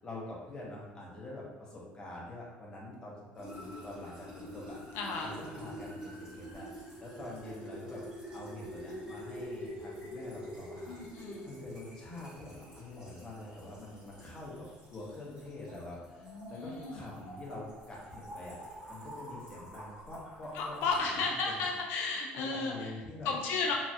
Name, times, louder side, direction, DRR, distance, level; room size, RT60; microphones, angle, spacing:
voice 1, 0.0-4.8 5.2-8.0 8.3-21.7 22.4-23.3, left 2 dB, 15° left, -5 dB, 0.6 m, -46 dB
sound 1, 3.3-21.0, equal, 30° right, 1.2 m, -46 dB
voice 2, 4.9-5.3 10.9-11.5 16.2-17.0 20.5-22.9 23.2-23.8, left 4 dB, 70° left, 0 dB, 0.3 m, -34 dB
3.1 x 2.3 x 2.6 m, 1.2 s
cardioid pair, 175°, 4 cm